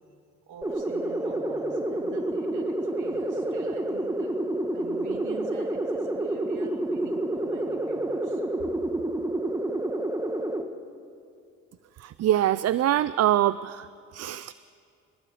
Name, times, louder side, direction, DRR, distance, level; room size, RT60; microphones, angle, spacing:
voice 1, 0.5-4.4 4.7-8.7, right 5 dB, 80° right, 2 dB, 3.2 m, -44 dB
sound 1, 0.6-10.6, right 1 dB, 10° right, 1.6 m, -29 dB
voice 2, 12.0-13.9 14.1-14.5, right 12 dB, 55° right, 16 dB, 0.5 m, -24 dB
29.5 x 20.5 x 5.0 m, 2.5 s
cardioid pair, 90°, 30 cm